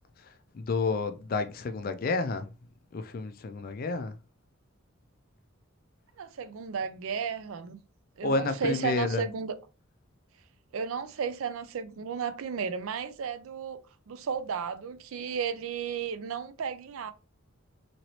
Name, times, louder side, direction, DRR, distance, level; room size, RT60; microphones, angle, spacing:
voice 1, 0.5-2.5 2.9-4.1 8.2-9.2, left 3 dB, 45° left, 0.3 m, -30 dB
voice 2, 6.2-7.8 8.2-9.5 10.7-13.8 14.1-17.1, right 6 dB, 75° right, 0.4 m, -34 dB
3.0 x 2.9 x 2.7 m
head